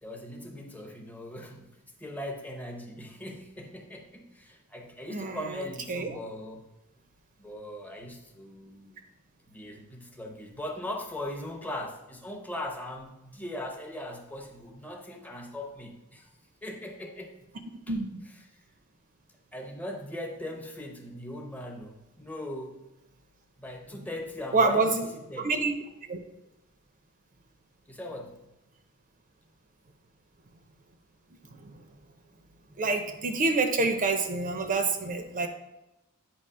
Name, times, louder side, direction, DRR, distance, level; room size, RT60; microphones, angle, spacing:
voice 1, 0.0-6.7 7.4-9.0 9.5-16.3 16.6-17.4 17.9-18.0 19.5-22.8 23.6-25.0 25.3-25.6 27.9-28.4, left 1 dB, 5° left, 2 dB, 0.8 m, -39 dB
voice 2, 5.1-6.2 17.9-18.2 24.5-25.1 25.4-25.7 26.1-26.2 31.4-31.8 32.8-35.5, right 3 dB, 35° right, 6 dB, 0.6 m, -27 dB
8.7 x 2.9 x 5.5 m, 0.95 s
head